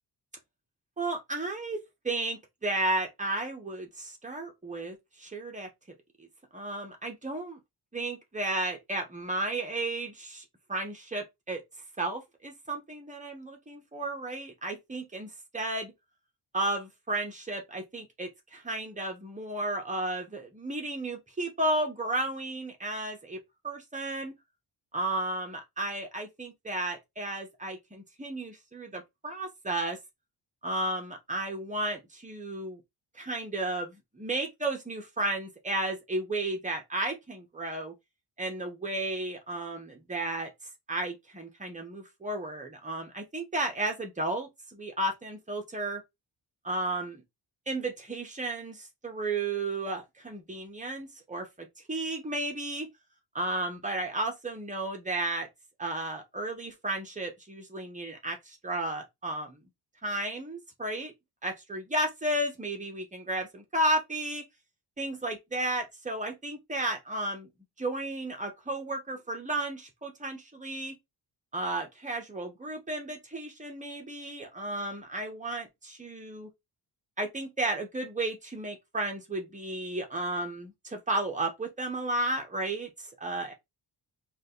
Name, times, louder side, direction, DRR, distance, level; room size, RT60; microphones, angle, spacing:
voice 1, 1.0-5.7 6.2-6.3 6.5-7.6 7.9-10.4 10.7-11.6 12.0-15.9 16.5-24.3 24.9-30.0 30.6-32.8 33.1-37.9 38.4-40.5 40.9-46.0 46.6-47.2 47.7-52.9 53.3-55.5 55.8-59.6 60.0-61.1 61.4-64.4 65.0-67.5 67.8-71.0 71.5-76.5 77.2-83.5, right 2 dB, 15° right, 1.2 m, -33 dB
5.0 x 2.7 x 3.9 m
wide cardioid pair, 160°, 43 cm